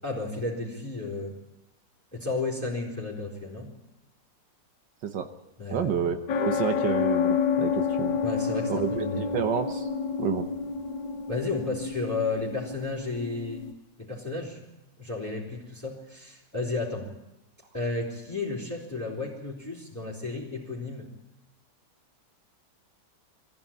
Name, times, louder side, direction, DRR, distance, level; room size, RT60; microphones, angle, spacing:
voice 1, 0.0-1.4 2.1-3.7 5.6-6.1 8.2-9.4 11.3-13.6 14.0-14.6 15.0-17.1 17.7-21.1, left 3 dB, 10° left, -4 dB, 4.1 m, -33 dB
voice 2, 5.7-8.2 8.7-9.9 10.2-10.5, right 7 dB, 75° right, 6 dB, 1.8 m, -29 dB
sound 1, 6.3-13.7, left 6 dB, 80° left, 1.7 m, -29 dB
22.5 x 15.5 x 9.0 m, 0.96 s
omnidirectional pair, 1.9 m